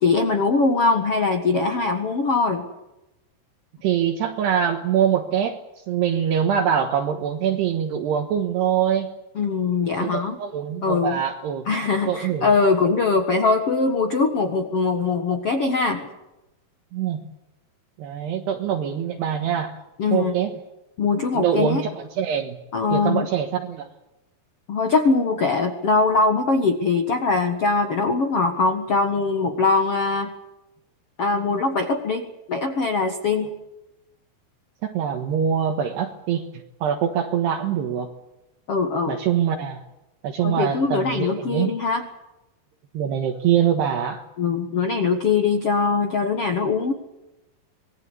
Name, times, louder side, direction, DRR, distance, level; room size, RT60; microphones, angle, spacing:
voice 1, 0.0-2.6 9.3-10.4 10.8-11.2 11.6-16.1 20.0-20.3 21.0-21.8 22.7-23.2 24.7-30.3 31.2-33.5 38.7-39.2 40.4-42.0 44.4-46.9, left 4 dB, 75° left, 5 dB, 1.3 m, -22 dB
voice 2, 3.8-5.6 5.9-9.1 10.0-11.7 12.1-12.5 16.9-17.2 18.0-19.8 20.1-20.5 21.3-22.6 22.9-23.9 34.8-36.5 36.8-38.1 39.1-39.8 40.2-41.7 42.9-44.2, right 9 dB, 70° right, 4 dB, 3.2 m, -24 dB
26.0 x 20.0 x 8.3 m, 0.94 s
omnidirectional pair, 5.4 m